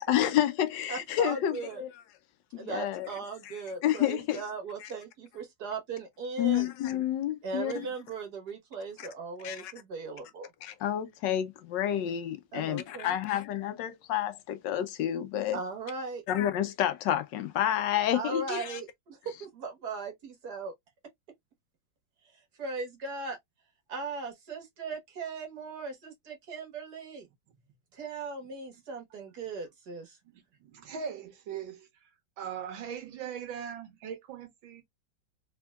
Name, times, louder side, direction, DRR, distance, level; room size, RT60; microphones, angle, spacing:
voice 1, 0.0-2.0 2.5-3.1 3.4-4.5 4.8-4.9 6.4-7.9 9.0-9.1 9.4-9.7 10.6-15.6 16.3-18.8, left 11 dB, 75° left, 1.1 m, -30 dB
voice 2, 0.9-1.8 2.6-6.7 7.4-10.5 12.5-13.1 15.5-16.2 18.1-20.7 22.6-23.4 23.9-27.3 28.0-30.1, right 4 dB, 55° right, 1.8 m, -38 dB
voice 3, 30.3-31.9 32.4-34.8, right 7 dB, 90° right, 1.9 m, -40 dB
3.5 x 3.4 x 2.3 m
omnidirectional pair, 2.1 m